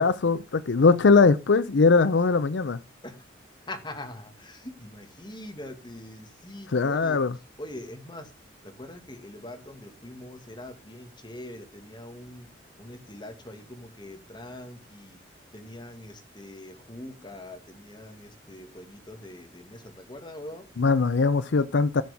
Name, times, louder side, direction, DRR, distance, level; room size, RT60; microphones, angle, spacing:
voice 1, 0.0-2.8 6.7-7.3 20.8-22.0, left 4 dB, 80° left, 0.5 m, -21 dB
voice 2, 3.7-7.2 7.6-8.3 8.6-12.5 12.8-15.2 15.5-20.7, left 1 dB, 25° left, 2.0 m, -43 dB
15.5 x 6.0 x 3.5 m
head